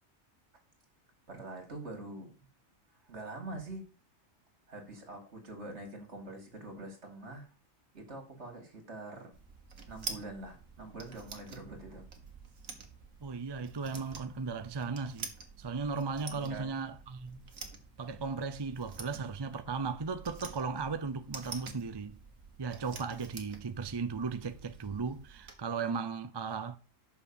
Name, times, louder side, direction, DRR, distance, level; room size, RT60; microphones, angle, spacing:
voice 1, 1.3-2.3 3.1-3.9 4.7-7.5 7.9-9.3 9.9-12.0 16.3-16.8, right 2 dB, 55° right, 2.8 m, -44 dB
sound 1, 9.3-25.5, right 5 dB, 80° right, 1.8 m, -48 dB
voice 2, 13.2-15.3 15.6-17.4 18.0-22.2 22.6-26.8, right 5 dB, 35° right, 0.4 m, -36 dB
6.5 x 5.8 x 7.1 m
omnidirectional pair, 1.4 m